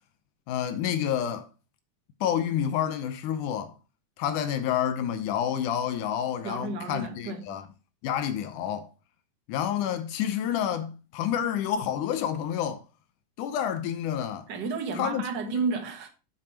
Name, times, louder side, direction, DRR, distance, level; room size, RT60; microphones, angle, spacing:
voice 1, 0.5-1.5 2.2-3.7 4.2-7.6 8.0-8.9 9.5-12.8 13.4-14.5 15.0-15.2 15.5-15.6, left 9 dB, 80° left, 2.2 m, -29 dB
voice 2, 6.4-7.5 14.5-16.1, right 4 dB, 50° right, 1.3 m, -32 dB
8.4 x 6.9 x 2.8 m
omnidirectional pair, 3.5 m